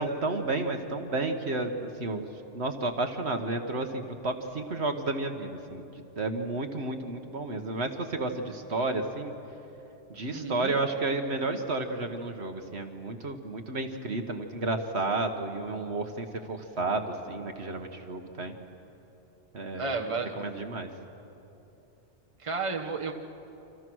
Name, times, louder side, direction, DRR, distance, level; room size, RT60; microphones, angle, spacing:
voice 1, 0.0-2.3 2.5-9.3 10.1-18.5 19.5-19.9 20.4-20.9, right 2 dB, 65° right, 6 dB, 1.6 m, -32 dB
voice 2, 10.2-10.7 19.8-20.4 22.4-23.1, right 4 dB, 25° right, 2 dB, 1.4 m, -32 dB
29.5 x 26.5 x 6.3 m, 3.0 s
omnidirectional pair, 1.2 m